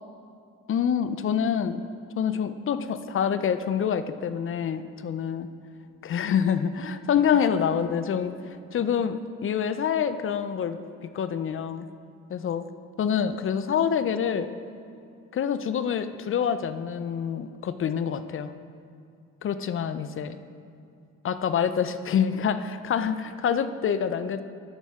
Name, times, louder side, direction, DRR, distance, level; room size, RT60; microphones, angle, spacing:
voice 1, 0.7-1.8 2.2-5.5 6.0-8.4 8.7-10.8 11.1-11.9 12.3-12.6 13.0-14.5 15.3-18.5 19.4-20.3 21.2-24.4, left 7 dB, 45° left, 11 dB, 0.5 m, -26 dB
12.5 x 6.2 x 3.6 m, 2.5 s
cardioid pair, 90°, 30 cm